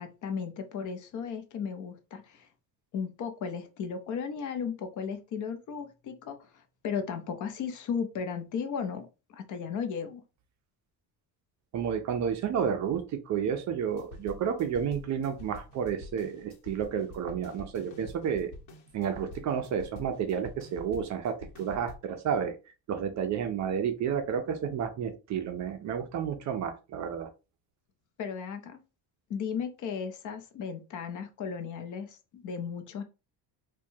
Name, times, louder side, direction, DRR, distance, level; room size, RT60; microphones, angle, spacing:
voice 1, 0.0-2.5 2.9-6.5 6.8-10.2 28.2-28.8 29.3-33.0, left 6 dB, 45° left, 8 dB, 0.6 m, -35 dB
voice 2, 11.7-18.5 18.9-22.6 22.9-27.3, right 7 dB, 45° right, 7 dB, 0.5 m, -31 dB
sound 1, 13.9-22.0, left 2 dB, 80° left, 1.1 m, -47 dB
4.4 x 2.2 x 2.7 m, 0.29 s
cardioid pair, 170°, 41 cm